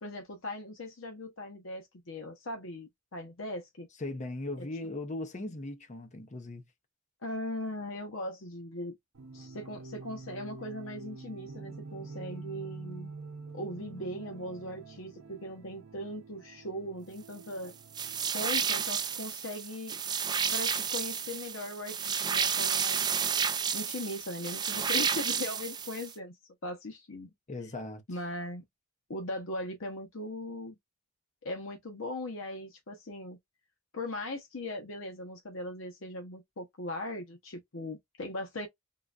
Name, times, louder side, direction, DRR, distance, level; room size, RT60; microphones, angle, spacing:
voice 1, 0.0-3.9 4.6-4.7 7.2-9.0 9.3-13.2 13.5-17.7 18.3-20.0 20.5-23.4 23.7-26.3 26.6-27.3 28.1-28.6 29.1-30.8 31.4-33.4 33.9-38.7, left 1 dB, 70° left, 0.9 m, -39 dB
voice 2, 4.0-6.7 27.5-28.0, left 2 dB, 35° left, 0.7 m, -38 dB
sound 1, 9.1-18.3, right 3 dB, 75° right, 0.6 m, -46 dB
sound 2, 17.9-26.1, right 7 dB, 20° right, 0.3 m, -31 dB
3.8 x 2.2 x 2.4 m
head